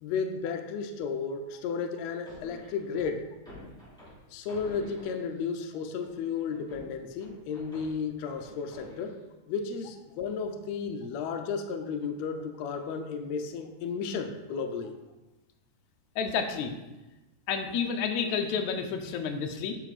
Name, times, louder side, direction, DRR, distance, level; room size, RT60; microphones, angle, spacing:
voice 1, 0.0-3.3 4.3-9.2 9.5-14.9, left 5 dB, 90° left, 6 dB, 1.5 m, -33 dB
sound 1, 2.3-5.5 6.0-9.3, equal, ahead, 1.7 m, -49 dB
voice 2, 16.2-16.7 17.5-19.7, left 6 dB, 75° left, 5 dB, 1.9 m, -30 dB
9.1 x 5.5 x 4.1 m, 1.1 s
omnidirectional pair, 3.9 m